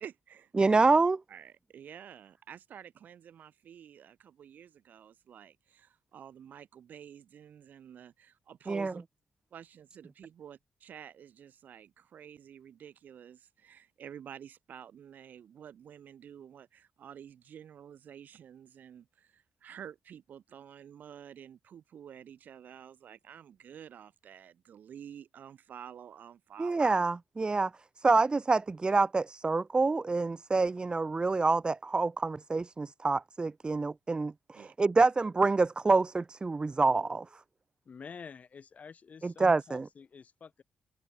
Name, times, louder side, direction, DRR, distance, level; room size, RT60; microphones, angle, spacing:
voice 1, 0.0-0.8 1.3-9.0 9.5-26.8 34.5-34.7, right 9 dB, 75° right, 1.3 m, -50 dB
voice 2, 0.6-1.2 8.7-8.9 26.6-27.7 28.0-37.3 39.2-39.9, right 3 dB, 30° right, 0.4 m, -27 dB
voice 3, 37.8-40.6, left 6 dB, 55° left, 1.3 m, -49 dB
supercardioid pair, 55°, 3 cm